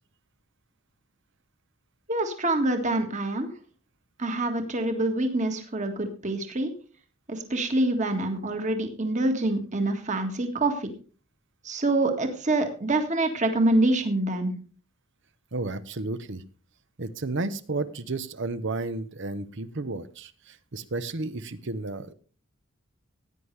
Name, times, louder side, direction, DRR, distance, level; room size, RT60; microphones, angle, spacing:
voice 1, 2.1-3.5 4.2-6.7 7.3-10.9 11.6-14.5, right 2 dB, 35° right, 6 dB, 1.8 m, -26 dB
voice 2, 15.5-16.4 17.0-22.1, right 2 dB, 60° right, 13 dB, 0.9 m, -32 dB
16.0 x 9.7 x 3.3 m, 0.39 s
head